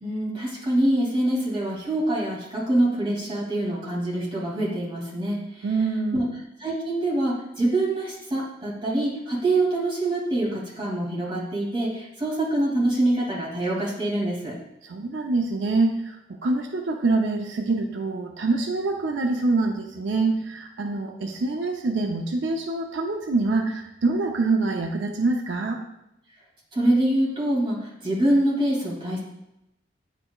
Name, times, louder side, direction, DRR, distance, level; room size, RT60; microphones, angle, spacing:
voice 1, 0.0-5.7 6.1-6.2 6.6-14.6 26.7-29.2, right 1 dB, 25° right, -6 dB, 2.4 m, -25 dB
voice 2, 5.6-6.3 14.8-25.8, right 3 dB, 85° right, 3 dB, 0.6 m, -25 dB
9.7 x 4.8 x 2.3 m, 0.86 s
head